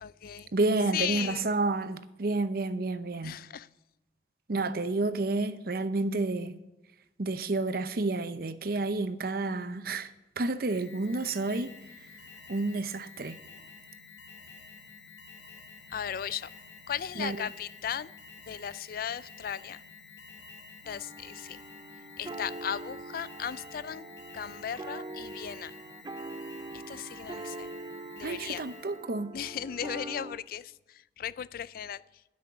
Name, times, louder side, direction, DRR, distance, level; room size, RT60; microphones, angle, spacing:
voice 1, 0.0-0.5 0.9-1.5 3.2-3.7 15.9-16.5 16.9-18.1 18.5-19.8 20.9-21.6 22.2-24.1 24.3-25.8 26.7-27.7 28.2-28.6 29.3-32.0, left 9 dB, 55° left, 0.3 m, -36 dB
voice 2, 0.5-3.4 4.5-6.6 7.2-11.7 12.5-13.4 17.2-17.4 28.2-29.3, right 2 dB, 55° right, 0.7 m, -30 dB
Alarm, 10.7-29.1, left 4 dB, 70° left, 2.3 m, -50 dB
sound 1, 20.9-30.4, right 2 dB, 25° right, 0.4 m, -43 dB
12.0 x 6.4 x 9.3 m
head